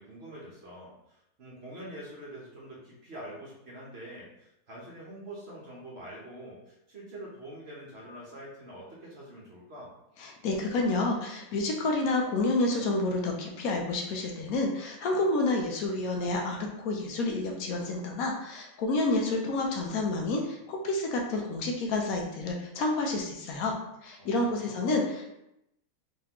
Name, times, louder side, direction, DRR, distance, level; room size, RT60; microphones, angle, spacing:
voice 1, 0.0-9.9 24.2-24.9, right 1 dB, 50° right, -5 dB, 1.0 m, -45 dB
voice 2, 10.2-23.7 24.0-25.3, left 2 dB, 70° left, 1 dB, 1.0 m, -29 dB
3.8 x 3.2 x 2.9 m, 0.84 s
omnidirectional pair, 1.7 m